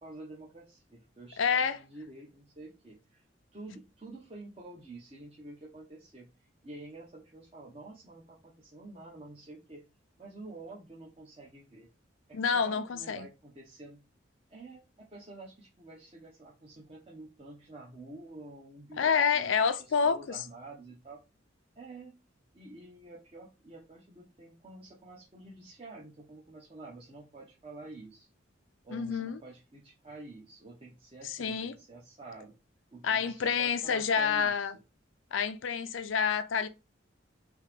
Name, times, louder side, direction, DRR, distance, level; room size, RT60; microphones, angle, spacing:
voice 1, 0.0-3.2 3.5-9.8 10.2-11.9 12.3-14.0 14.5-21.2 21.8-22.2 22.5-28.3 28.8-32.6 32.9-34.7, right 2 dB, 30° right, 0.7 m, -49 dB
voice 2, 1.4-1.8 12.3-13.3 19.0-20.4 28.9-29.4 31.2-31.7 33.0-34.8 35.3-36.7, left 6 dB, 85° left, 0.5 m, -28 dB
3.3 x 2.8 x 3.3 m
head